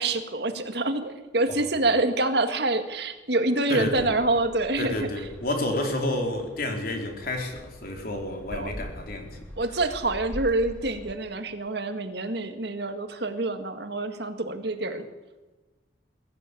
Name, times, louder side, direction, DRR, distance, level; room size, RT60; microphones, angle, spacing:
voice 1, 0.0-5.1 8.5-8.8 9.6-15.0, right 2 dB, 60° right, 7 dB, 2.0 m, -26 dB
voice 2, 3.7-4.1 4.8-9.4, left 1 dB, 50° left, 3 dB, 4.1 m, -30 dB
sound 1, 3.8-11.1, equal, 5° left, 2.1 m, -43 dB
22.0 x 14.5 x 8.6 m, 1.2 s
head